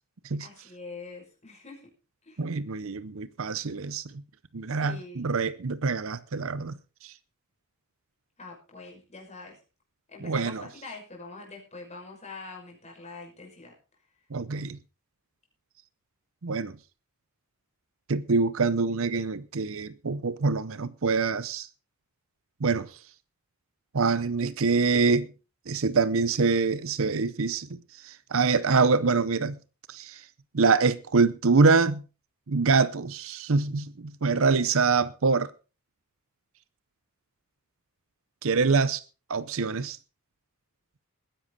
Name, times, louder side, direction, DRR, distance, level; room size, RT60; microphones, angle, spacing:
voice 1, 0.4-1.9 2.2-2.4 4.7-5.3 8.4-9.6 10.1-13.7, left 3 dB, 30° left, 6.0 m, -44 dB
voice 2, 2.4-4.0 4.5-6.7 7.0-7.1 10.2-10.7 14.3-14.8 16.4-16.7 18.1-21.7 22.6-22.9 23.9-25.3 25.7-27.8 28.0-29.6 29.9-30.2 30.5-32.0 32.5-35.5 38.4-39.0 39.3-40.0, right 4 dB, 60° right, 0.7 m, -25 dB
19.5 x 10.5 x 4.0 m
head